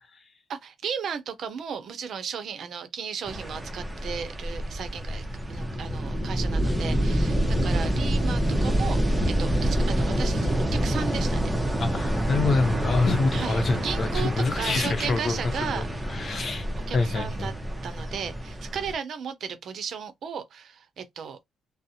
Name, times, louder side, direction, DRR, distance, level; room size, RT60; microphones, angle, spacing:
voice 1, 0.5-11.5 13.3-15.9 16.9-17.5 17.8-21.4, right 7 dB, 60° right, 0.6 m, -35 dB
sound 1, 3.3-18.9, equal, 10° right, 0.8 m, -27 dB
voice 2, 11.8-16.7 16.9-17.5, left 3 dB, 45° left, 0.7 m, -26 dB
2.5 x 2.0 x 2.8 m
cardioid pair, 90°, 0 cm